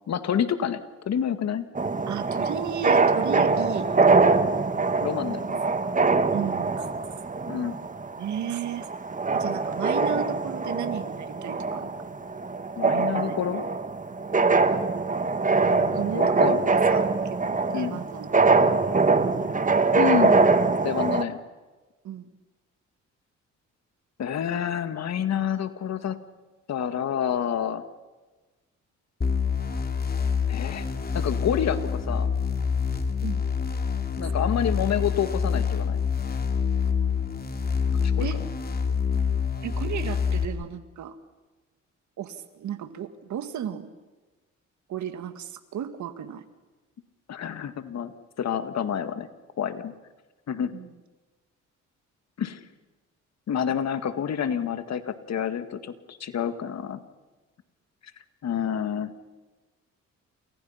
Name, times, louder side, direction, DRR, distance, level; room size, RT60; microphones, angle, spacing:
voice 1, 0.1-1.7 5.0-5.6 7.5-7.8 12.8-13.6 15.5-16.6 17.7-18.0 20.0-20.4 20.8-21.4 24.2-26.2 26.7-27.8 30.5-30.9 31.1-32.3 34.2-36.0 38.0-38.3 47.3-49.3 49.6-49.9 50.5-50.7 52.4-52.6 53.5-57.0 58.4-59.1, left 8 dB, 60° left, 10 dB, 2.0 m, -28 dB
sound 1, 1.7-21.2, right 4 dB, 25° right, 1.7 m, -23 dB
voice 2, 2.1-3.9 6.3-6.9 8.2-8.9 9.3-11.9 12.8-13.4 15.7-18.3 22.0-22.3 33.2-33.4 34.2-34.3 38.2-38.4 39.6-41.2 42.2-43.9 44.9-46.5 50.7-50.9, right 9 dB, 70° right, 9 dB, 2.1 m, -34 dB
sound 2, 29.2-40.5, left 6 dB, 30° left, 3.0 m, -26 dB
28.5 x 28.5 x 5.8 m, 1.2 s
cardioid pair, 90°, 30 cm